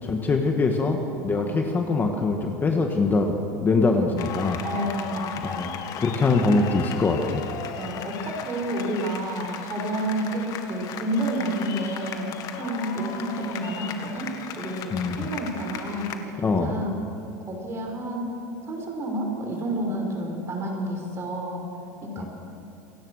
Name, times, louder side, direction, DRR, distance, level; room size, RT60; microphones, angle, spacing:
voice 1, 0.0-3.4 3.6-4.6 5.4-5.7 6.0-7.5 14.9-15.2 16.4-16.7 22.2-22.3, left 3 dB, 20° left, 3 dB, 1.7 m, -23 dB
sound 1, 4.2-16.2, left 8 dB, 45° left, 1.8 m, -37 dB
voice 2, 4.6-6.7 7.8-12.3 12.6-17.0 17.4-18.3 18.6-21.6 22.0-22.3, right 1 dB, 30° right, 2 dB, 5.7 m, -30 dB
28.0 x 17.0 x 6.6 m, 2.7 s
supercardioid pair, 135°, 9 cm